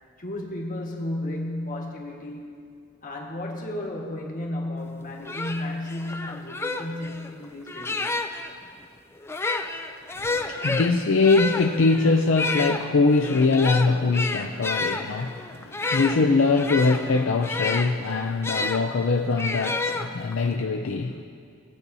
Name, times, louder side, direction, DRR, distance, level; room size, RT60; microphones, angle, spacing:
voice 1, 0.2-2.5 3.0-8.1, left 1 dB, 45° left, -1 dB, 1.4 m, -33 dB
sound 1, 4.9-5.0 5.2-8.5 9.2-18.8 19.4-20.5, left 3 dB, 10° left, 0.4 m, -30 dB
voice 2, 10.2-21.2, left 3 dB, 70° left, 3 dB, 0.5 m, -22 dB
19.5 x 8.4 x 2.7 m, 2.3 s
head